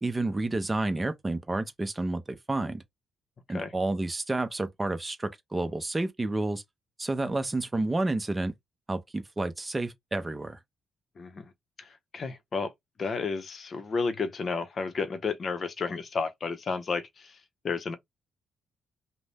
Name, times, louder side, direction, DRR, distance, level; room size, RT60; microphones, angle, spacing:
voice 1, 0.0-2.8 3.5-6.6 7.0-8.5 8.9-10.6, right 2 dB, 20° right, 0.6 m, -30 dB
voice 2, 11.2-11.5 11.8-12.7 13.0-17.9, left 4 dB, 45° left, 0.6 m, -32 dB
2.6 x 2.1 x 3.3 m
cardioid pair, 90°, 0 cm